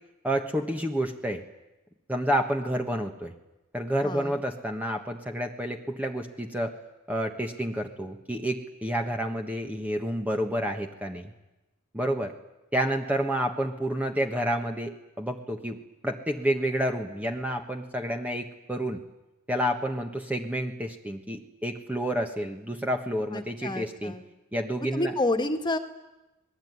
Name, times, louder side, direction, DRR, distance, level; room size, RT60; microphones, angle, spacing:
voice 1, 0.2-1.4 2.1-3.3 3.7-6.8 7.1-11.3 11.9-12.3 12.7-15.8 16.0-19.0 19.5-24.1 24.5-25.1, equal, 5° right, 3 dB, 1.4 m, -29 dB
voice 2, 4.0-4.4 23.3-24.2 24.9-25.8, left 2 dB, 20° left, 5 dB, 2.0 m, -29 dB
26.0 x 20.5 x 9.6 m, 0.99 s
head